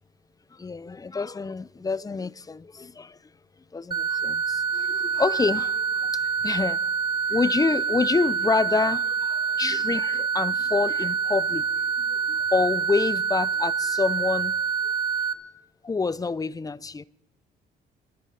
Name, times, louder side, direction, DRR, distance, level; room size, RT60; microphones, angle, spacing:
voice 1, 0.5-3.2 3.7-6.8 7.3-14.6 15.8-17.0, left 4 dB, 20° left, 0.4 m, -27 dB
sound 1, 3.9-15.3, right 6 dB, 20° right, 1.1 m, -26 dB
25.0 x 11.5 x 4.0 m
cardioid pair, 90°, 20 cm